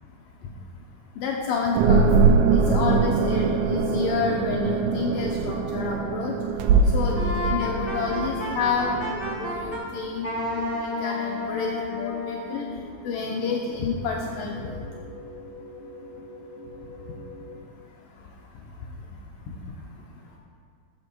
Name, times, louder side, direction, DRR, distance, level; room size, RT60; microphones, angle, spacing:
voice 1, 1.2-6.3 6.9-10.3 10.6-12.6 13.0-14.8, left 5 dB, 80° left, -1 dB, 2.5 m, -29 dB
sound 1, 1.8-9.7, right 4 dB, 80° right, 1.8 m, -23 dB
sound 2, 2.6-17.6, left 1 dB, 60° left, 4.6 m, -44 dB
Wind instrument woodwind instrument, 7.2-9.8 10.2-12.6, left 2 dB, 15° left, 2.4 m, -31 dB
15.5 x 7.2 x 4.5 m, 2.2 s
omnidirectional pair, 3.9 m